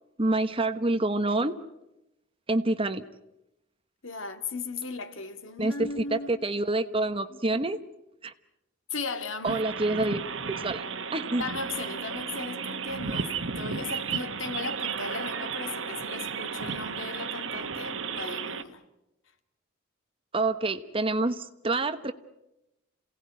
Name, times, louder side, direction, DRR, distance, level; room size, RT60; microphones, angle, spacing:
voice 1, 0.2-1.6 2.5-3.0 5.6-7.8 8.2-8.3 9.4-10.8 11.1-11.4 20.3-22.1, right 2 dB, 30° right, 1.1 m, -27 dB
voice 2, 4.0-6.5 7.3-7.4 8.9-9.6 11.4-18.8, left 3 dB, 85° left, 2.1 m, -37 dB
sound 1, 9.4-18.6, right 5 dB, 80° right, 1.3 m, -34 dB
27.5 x 18.0 x 9.4 m
head